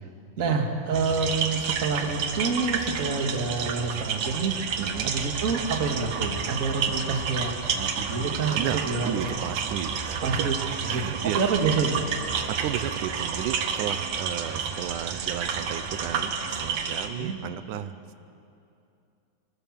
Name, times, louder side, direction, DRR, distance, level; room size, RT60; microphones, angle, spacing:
voice 1, 0.4-4.5 5.0-9.2 10.2-10.5 10.9-11.0 11.3-12.1 14.5-14.7 17.1-17.4, right 4 dB, 30° right, 2 dB, 1.9 m, -28 dB
sound 1, 0.9-17.1, right 6 dB, 65° right, 2.4 m, -30 dB
voice 2, 4.8-5.1 8.5-10.5 10.9-11.4 12.5-18.0, right 11 dB, 90° right, 11 dB, 2.3 m, -33 dB
27.0 x 20.0 x 7.4 m, 2.6 s
omnidirectional pair, 3.5 m